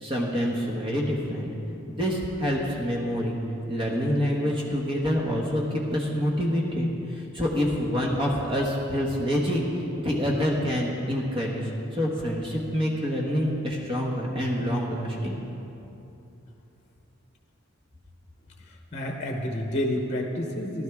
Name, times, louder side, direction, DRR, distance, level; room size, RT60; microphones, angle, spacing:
voice 1, 0.0-1.5 1.9-3.4 3.7-9.6 10.0-15.4, equal, 25° right, -2 dB, 1.2 m, -27 dB
voice 2, 18.6-20.8, left 1 dB, 35° left, 2 dB, 0.9 m, -30 dB
16.0 x 12.0 x 3.5 m, 2.9 s
head